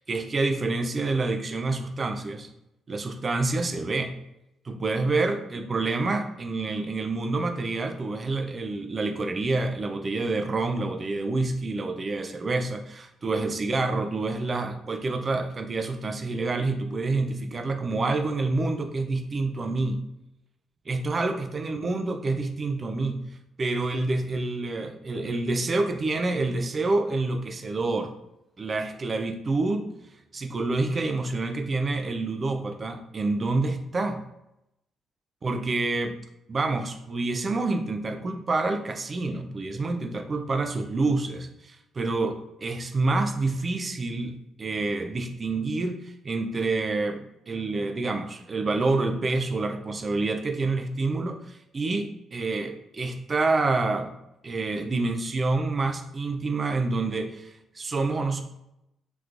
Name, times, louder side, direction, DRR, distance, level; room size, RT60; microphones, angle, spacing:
voice 1, 0.1-2.5 2.9-4.1 4.6-20.0 20.9-23.2 23.6-28.1 28.6-29.9 30.3-34.2 35.4-36.2 36.5-54.1 54.4-58.4, right 3 dB, 35° right, 7 dB, 0.4 m, -27 dB
3.6 x 3.0 x 2.4 m, 0.85 s
cardioid pair, 90°, 0 cm